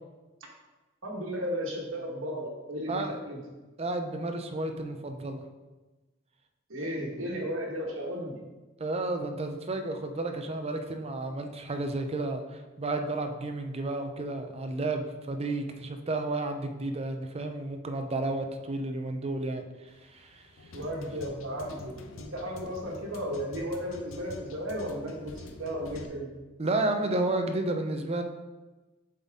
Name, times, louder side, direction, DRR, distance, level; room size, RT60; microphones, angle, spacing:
voice 1, 1.0-3.4 6.7-8.4 20.7-26.3, equal, 90° right, -1 dB, 1.4 m, -34 dB
voice 2, 3.8-5.4 8.8-20.5 26.6-28.2, right 2 dB, 30° right, 6 dB, 0.6 m, -32 dB
sound 1, 19.9-26.1, left 2 dB, 90° left, 0.6 m, -46 dB
7.3 x 4.1 x 3.6 m, 1.2 s
head